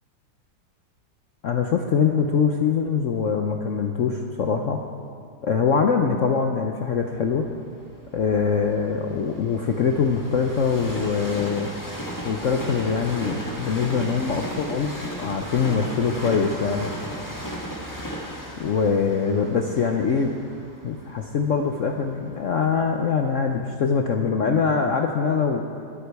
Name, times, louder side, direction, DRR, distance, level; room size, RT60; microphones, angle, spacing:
voice 1, 1.4-4.8 5.4-7.5 8.1-11.7 12.2-16.9 18.6-20.3 20.8-25.6, left 6 dB, 65° left, 3 dB, 0.7 m, -23 dB
Train, 7.1-23.1 23.7-23.8, equal, 10° left, 1.3 m, -36 dB
21.5 x 8.2 x 4.7 m, 2.2 s
omnidirectional pair, 2.1 m